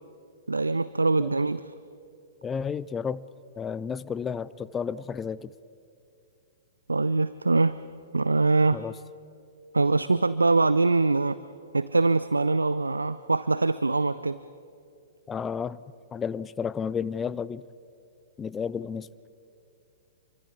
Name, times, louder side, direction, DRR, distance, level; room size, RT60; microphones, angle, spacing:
voice 1, 0.5-1.7 6.9-7.8 8.1-8.8 9.7-11.4 11.7-14.4, right 3 dB, 75° right, 16 dB, 0.4 m, -23 dB
voice 2, 2.4-3.3 3.6-5.5 8.7-8.9 15.3-15.8 16.1-17.6 18.4-19.1, left 6 dB, 15° left, 18 dB, 0.5 m, -32 dB
28.0 x 24.0 x 4.6 m, 2.5 s
figure-of-eight pair, 110°, 0 cm